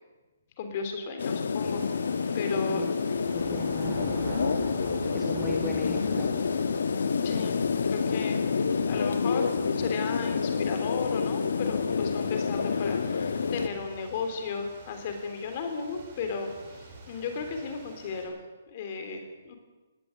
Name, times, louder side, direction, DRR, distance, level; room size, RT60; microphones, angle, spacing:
voice 1, 0.6-1.8 2.3-2.8 7.2-7.6 7.9-8.4 8.8-9.5 9.8-18.4 18.7-19.5, left 5 dB, 25° left, 6 dB, 3.3 m, -35 dB
sound 1, 1.2-13.7, left 5 dB, 65° left, 1.4 m, -28 dB
sound 2, 1.6-18.2, right 2 dB, 25° right, 5.6 m, -44 dB
voice 2, 3.3-4.2 5.1-6.3, left 1 dB, ahead, -2 dB, 1.4 m, -38 dB
18.5 x 18.5 x 8.8 m, 1.2 s
hypercardioid pair, 180°, 0 cm